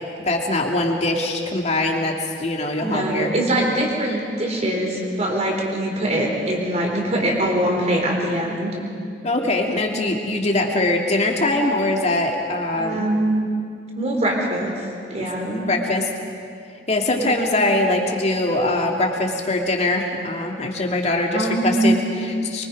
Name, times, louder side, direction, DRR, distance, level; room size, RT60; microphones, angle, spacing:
voice 1, 0.3-3.3 9.2-13.0 15.2-15.3 15.7-16.1 16.9-22.7, left 2 dB, 40° left, 1 dB, 2.4 m, -22 dB
voice 2, 2.8-8.8 12.8-13.4 14.0-14.7 15.1-15.6 21.3-22.1, right 1 dB, 40° right, 0 dB, 3.9 m, -22 dB
23.5 x 23.5 x 5.3 m, 2.3 s
head